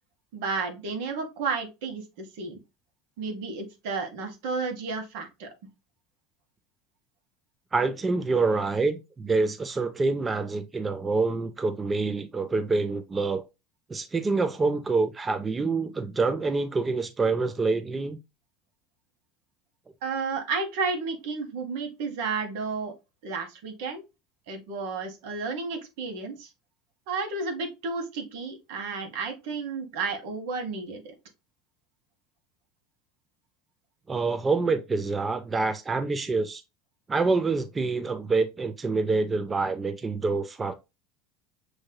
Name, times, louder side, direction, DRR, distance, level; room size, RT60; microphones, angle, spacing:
voice 1, 0.3-2.6 3.2-5.5 20.0-22.9 23.2-24.0 24.5-26.5 27.1-31.1, right 4 dB, 75° right, 1.4 m, -32 dB
voice 2, 7.7-13.4 13.9-18.2 34.1-36.6 37.1-40.7, right 3 dB, 15° right, 0.4 m, -26 dB
6.3 x 3.2 x 2.2 m
supercardioid pair, 135°, 0 cm